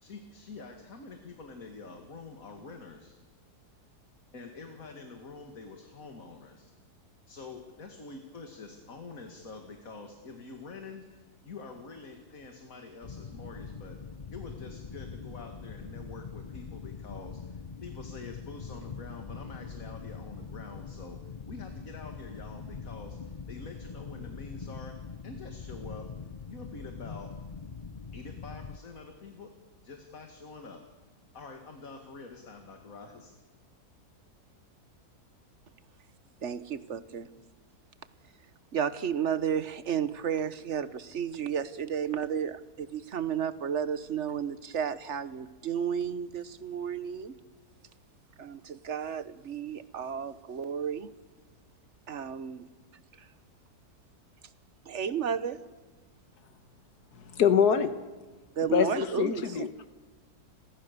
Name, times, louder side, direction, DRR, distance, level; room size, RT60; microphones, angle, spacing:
voice 1, 0.0-3.2 4.3-6.7 7.3-14.0 14.3-24.9 25.2-26.1 26.5-27.3 28.1-29.5 29.8-30.8 31.3-33.3, left 4 dB, 60° left, 4 dB, 2.6 m, -46 dB
sound 1, 13.0-28.8, left 5 dB, 35° left, 0.7 m, -43 dB
voice 2, 36.4-37.3 38.7-47.3 48.4-51.1 52.1-52.6 54.9-55.6 58.6-59.7, right 8 dB, 50° right, 14 dB, 1.3 m, -32 dB
voice 3, 57.3-57.9 58.6-59.9, left 8 dB, 75° left, 11 dB, 1.7 m, -25 dB
30.0 x 22.5 x 6.9 m, 1.3 s
omnidirectional pair, 1.7 m